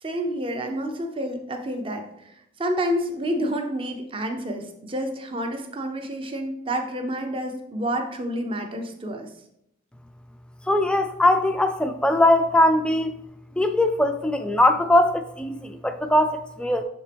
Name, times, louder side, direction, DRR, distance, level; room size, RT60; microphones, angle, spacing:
voice 1, 0.0-2.3 2.6-9.3, equal, 25° right, 0.6 m, -29 dB
voice 2, 10.7-13.1 13.6-16.8, left 1 dB, 5° left, 0.3 m, -20 dB
6.6 x 4.3 x 3.4 m
head